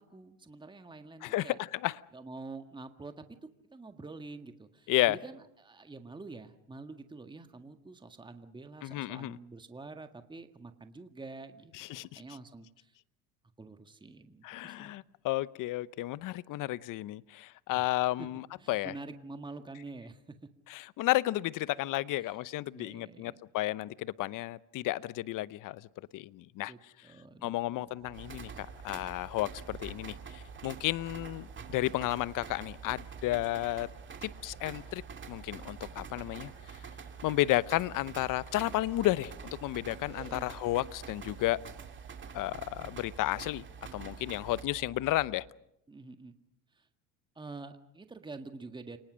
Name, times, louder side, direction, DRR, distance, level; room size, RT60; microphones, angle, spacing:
voice 1, 0.0-1.6 2.1-13.0 13.6-15.0 17.7-17.9 18.2-18.3 18.6-20.4 22.2-22.4 22.7-23.4 26.7-28.1 40.2-40.5 45.9-46.3 46.7-46.9 47.4-49.0, right 3 dB, 10° right, 8 dB, 1.7 m, -47 dB
voice 2, 1.2-2.0 4.9-5.2 8.8-9.4 11.7-12.2 14.4-18.9 20.7-25.9 26.1-26.7 27.4-33.9 34.2-35.0 35.3-36.5 37.2-41.6 42.3-43.6 43.9-45.5, left 16 dB, 50° left, 19 dB, 0.9 m, -32 dB
sound 1, 27.8-45.4, right 5 dB, 65° right, 6.9 m, -50 dB
sound 2, 28.1-44.6, right 6 dB, 30° right, 2.7 m, -48 dB
29.5 x 19.5 x 6.3 m, 0.79 s
supercardioid pair, 95°, 40 cm